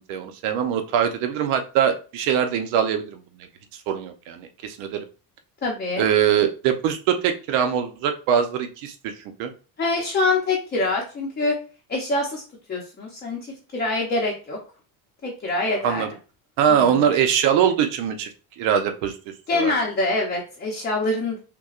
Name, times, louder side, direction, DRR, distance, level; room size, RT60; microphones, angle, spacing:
voice 1, 0.1-3.5 3.9-5.0 6.0-9.1 9.4-9.5 15.8-16.1 16.6-18.3 18.6-19.1 19.5-19.7, right 8 dB, 85° right, 7 dB, 0.9 m, -22 dB
voice 2, 5.6-6.1 9.8-11.6 11.9-12.4 12.7-13.4 13.7-14.6 15.2-16.0 16.7-17.1 19.5-21.4, left 2 dB, 20° left, -2 dB, 0.7 m, -25 dB
5.7 x 2.3 x 2.4 m, 0.36 s
cardioid pair, 150°, 49 cm